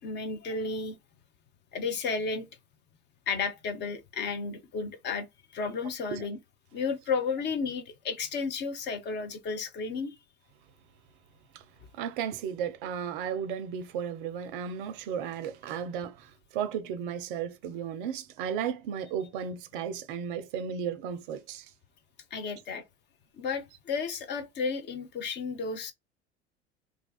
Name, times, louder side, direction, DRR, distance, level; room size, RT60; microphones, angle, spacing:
voice 1, 0.0-1.0 1.7-2.5 3.3-5.3 5.5-6.4 6.7-10.2 22.3-22.8 23.4-25.9, left 4 dB, 35° left, 0.6 m, -33 dB
voice 2, 11.9-21.7, right 8 dB, 50° right, 0.5 m, -34 dB
2.4 x 2.3 x 2.3 m
figure-of-eight pair, 70°, 33 cm